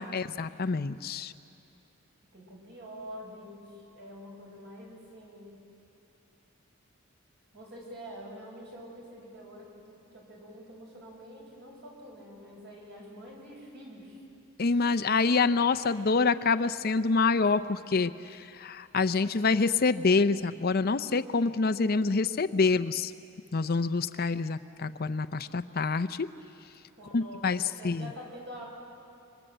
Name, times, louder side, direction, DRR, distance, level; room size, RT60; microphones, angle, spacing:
voice 1, 0.0-1.3 14.6-23.1 23.5-26.3 27.1-28.1, left 4 dB, 45° left, 12 dB, 0.6 m, -26 dB
voice 2, 2.3-5.6 7.5-14.2 27.0-28.7, equal, 55° right, -2 dB, 7.3 m, -46 dB
26.0 x 24.5 x 7.9 m, 2.6 s
head